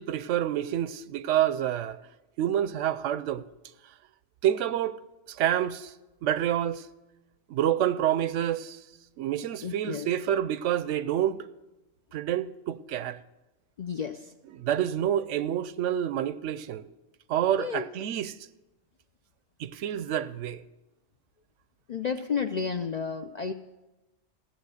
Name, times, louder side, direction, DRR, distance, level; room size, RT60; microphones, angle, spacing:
voice 1, 0.0-2.0 2.4-3.4 4.4-5.0 5.3-5.9 6.2-6.9 7.5-8.8 9.2-11.5 12.1-13.2 14.5-16.9 17.3-18.4 19.6-20.6, right 11 dB, 75° right, 0.9 m, -28 dB
voice 2, 9.6-10.1 13.8-14.3 17.6-17.9 21.9-23.5, left 6 dB, 55° left, 0.4 m, -31 dB
15.5 x 7.6 x 6.4 m
omnidirectional pair, 1.3 m